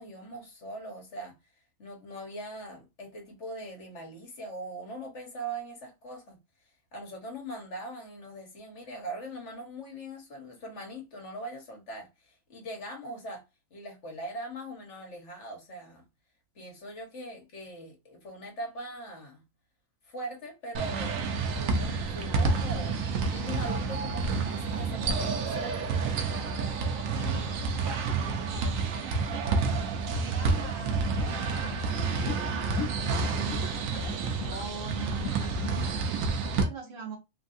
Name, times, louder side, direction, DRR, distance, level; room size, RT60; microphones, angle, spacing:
voice 1, 0.0-1.4 1.8-6.4 6.9-13.4 13.7-16.0 16.5-19.4 20.0-21.2 21.6-23.0 23.2-25.9, right 1 dB, 60° left, 1.5 m, -41 dB
sound 1, 20.8-36.6, right 4 dB, 90° right, 1.1 m, -29 dB
voice 2, 26.8-29.6 30.1-37.2, right 4 dB, 45° right, 1.1 m, -44 dB
sound 2, 30.4-35.8, left 7 dB, 80° left, 1.2 m, -40 dB
3.4 x 2.6 x 2.5 m
omnidirectional pair, 1.4 m